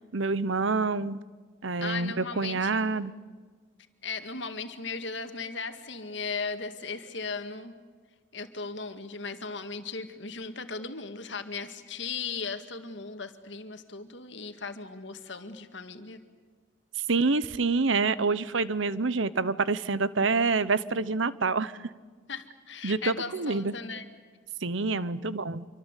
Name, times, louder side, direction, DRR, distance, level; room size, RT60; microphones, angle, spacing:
voice 1, 0.1-1.2 1.6-3.1 17.1-21.7 22.8-23.7 24.6-25.7, right 4 dB, 80° right, 17 dB, 0.9 m, -27 dB
voice 2, 1.8-2.9 4.0-7.7 8.3-16.2 22.3-24.1, left 4 dB, 70° left, 7 dB, 2.1 m, -37 dB
26.5 x 25.0 x 8.3 m, 1.5 s
head